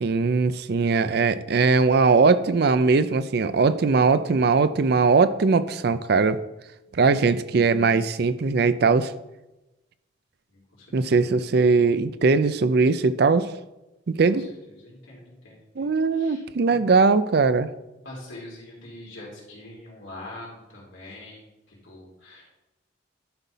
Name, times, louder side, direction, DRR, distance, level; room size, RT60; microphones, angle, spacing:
voice 1, 0.0-6.4 7.0-9.1 10.9-13.5 14.2-14.4 15.8-17.7, right 4 dB, 55° right, 13 dB, 0.4 m, -20 dB
voice 2, 10.5-11.3 14.4-16.4 16.7-16.8 18.0-22.5, left 1 dB, 80° left, -3 dB, 3.4 m, -44 dB
11.5 x 5.5 x 4.1 m, 0.99 s
head